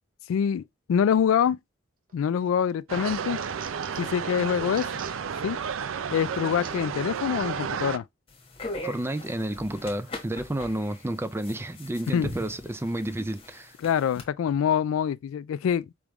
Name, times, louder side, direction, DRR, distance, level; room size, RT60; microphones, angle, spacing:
voice 1, 0.3-0.6 0.9-1.6 2.1-3.4 4.0-4.9 5.4-5.6 6.1-8.0 12.1-12.3 13.8-15.9, left 8 dB, 85° left, 0.3 m, -25 dB
sound 1, 2.1-2.5 2.9-4.2 4.7-5.2 5.7-5.8 6.6-6.8 7.5-7.7, right 8 dB, 45° right, 0.7 m, -46 dB
sound 2, 2.9-8.0, right 7 dB, 80° right, 0.5 m, -32 dB
sound 3, 8.3-14.2, left 1 dB, 30° left, 1.2 m, -40 dB
voice 2, 8.8-13.7, right 1 dB, 10° right, 0.4 m, -31 dB
5.0 x 3.5 x 3.0 m
head